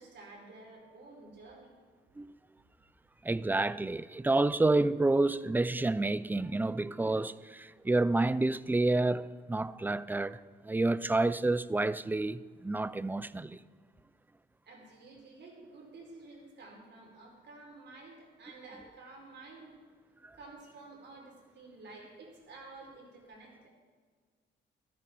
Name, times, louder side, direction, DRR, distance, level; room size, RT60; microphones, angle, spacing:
voice 1, 0.0-1.7 14.7-19.7 20.1-23.7, right 3 dB, 60° right, 4.5 m, -51 dB
voice 2, 3.2-13.6 20.2-20.4, right 2 dB, 10° right, 0.4 m, -29 dB
14.5 x 13.5 x 4.6 m
cardioid pair, 90°, 20 cm